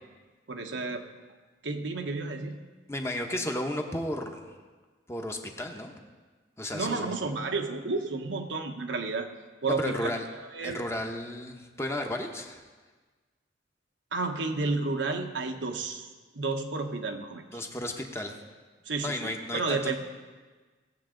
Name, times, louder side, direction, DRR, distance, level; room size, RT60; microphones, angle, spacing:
voice 1, 0.5-1.0 1.6-2.6 6.7-9.3 9.6-10.8 14.1-16.1 16.3-17.6 18.9-20.0, right 3 dB, 85° right, 4 dB, 1.1 m, -31 dB
voice 2, 2.9-4.5 5.1-5.9 6.6-7.2 9.7-10.2 10.6-12.6 17.5-18.4 19.0-20.0, left 1 dB, 15° left, 3 dB, 0.9 m, -33 dB
18.0 x 7.3 x 3.8 m, 1.4 s
head